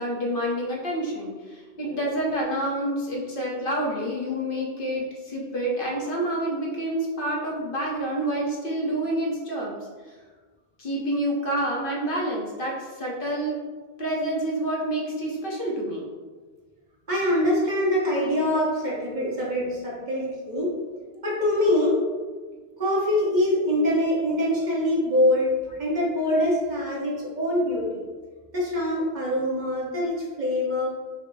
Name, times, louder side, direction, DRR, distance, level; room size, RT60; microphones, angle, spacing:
voice 1, 0.0-9.8 10.8-13.6 14.0-16.0, right 1 dB, 60° left, -3 dB, 1.0 m, -28 dB
voice 2, 17.1-20.8 21.2-22.0 22.8-25.5 25.8-28.0 28.5-31.0, left 1 dB, 45° right, -5 dB, 1.2 m, -24 dB
5.3 x 2.0 x 4.0 m, 1.4 s
omnidirectional pair, 1.0 m